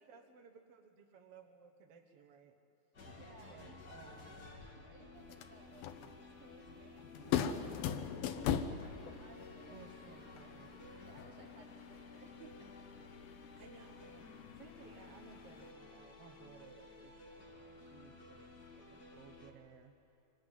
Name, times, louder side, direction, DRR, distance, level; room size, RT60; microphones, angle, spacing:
voice 1, 0.0-2.6 3.5-4.6 7.4-8.3 9.7-10.8 13.5-19.9, right 6 dB, 60° right, 5 dB, 1.6 m, -59 dB
sound 1, 2.9-19.5, left 2 dB, 30° left, 2.1 m, -56 dB
voice 2, 3.1-3.8 4.2-9.9 10.2-10.5 11.0-12.9, right 3 dB, 45° right, -1 dB, 3.7 m, -61 dB
sound 2, 5.2-15.7, left 8 dB, 80° left, 2.8 m, -42 dB
sound 3, 6.1-6.9 8.8-12.4, equal, 30° right, 2.0 m, -64 dB
24.0 x 19.0 x 9.9 m, 2.7 s
omnidirectional pair, 4.2 m